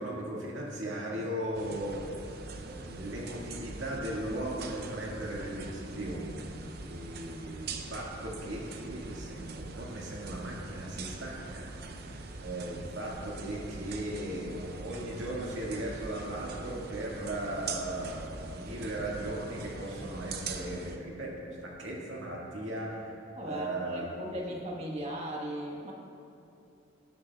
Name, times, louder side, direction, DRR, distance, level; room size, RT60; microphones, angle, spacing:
voice 1, 0.0-24.2, right 1 dB, 80° right, -3 dB, 2.0 m, -37 dB
sound 1, 1.5-21.0, right 3 dB, 55° right, 0.6 m, -43 dB
voice 2, 23.3-25.9, right 1 dB, 35° right, -2 dB, 1.4 m, -37 dB
12.0 x 11.5 x 2.4 m, 2.7 s
head